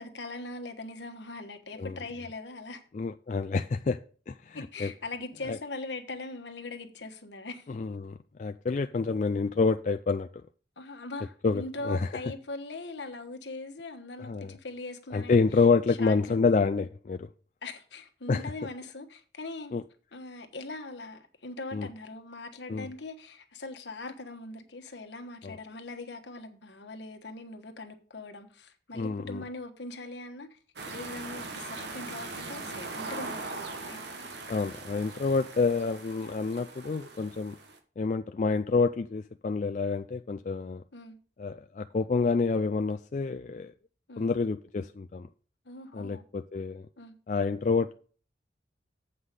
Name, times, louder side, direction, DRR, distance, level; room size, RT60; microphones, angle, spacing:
voice 1, 0.0-2.8 4.5-7.7 10.8-15.3 16.0-16.5 17.6-19.7 20.1-30.6 30.9-34.0 40.9-41.2 44.1-44.3 45.6-46.2 47.0-47.2, left 2 dB, 75° left, 1.3 m, -41 dB
voice 2, 2.9-4.0 4.3-4.9 5.5-5.6 7.7-10.3 11.4-12.1 14.2-14.5 15.1-17.3 18.3-18.4 19.7-19.8 21.7-21.9 22.7-22.9 25.4-25.6 28.9-29.4 34.5-37.6 38.0-40.8 41.4-43.7 44.2-45.3 45.9-46.9 47.3-47.9, left 4 dB, 40° left, 0.3 m, -28 dB
sound 1, 30.8-37.8, right 3 dB, 70° right, 1.3 m, -40 dB
8.0 x 5.7 x 6.6 m
head